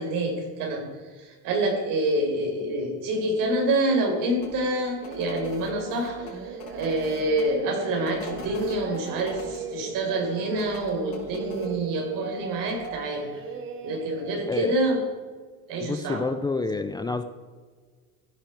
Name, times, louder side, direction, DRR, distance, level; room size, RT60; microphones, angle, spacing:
voice 1, 0.0-13.4 13.8-15.0 15.7-16.3, right 1 dB, 70° right, 2 dB, 4.4 m, -27 dB
sound 1, 4.4-4.5 5.0-7.4 8.0-9.6 10.5-11.7 12.7-12.9, left 5 dB, 80° left, 4.1 m, -43 dB
Singing, 5.0-14.4, right 5 dB, 35° right, 1.7 m, -38 dB
voice 2, 14.5-14.8 15.8-17.2, left 3 dB, 10° left, 9 dB, 0.4 m, -28 dB
15.5 x 12.0 x 4.6 m, 1.6 s
cardioid pair, 145°, 34 cm